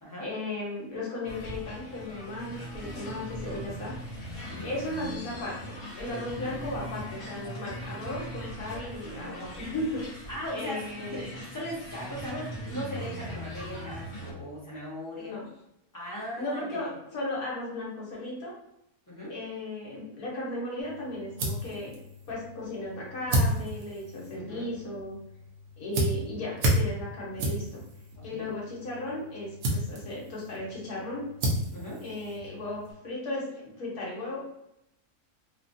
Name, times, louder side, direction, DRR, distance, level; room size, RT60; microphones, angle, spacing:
voice 1, 0.2-3.9 4.6-10.0 10.5-11.3 15.1-15.5 16.4-18.5 19.3-21.9 22.3-25.2 25.8-27.8 28.2-31.3 32.0-34.5, left 1 dB, 70° left, -4 dB, 1.5 m, -36 dB
sound 1, 1.2-14.3, equal, 50° left, 1.0 m, -40 dB
voice 2, 10.3-15.3 15.9-16.9 19.1-19.3 24.4-24.7 28.2-28.5 31.7-32.0, equal, 15° left, -7 dB, 0.8 m, -38 dB
sound 2, 20.8-32.9, right 1 dB, 65° right, 1.1 m, -33 dB
3.3 x 2.3 x 2.6 m, 0.82 s
omnidirectional pair, 1.6 m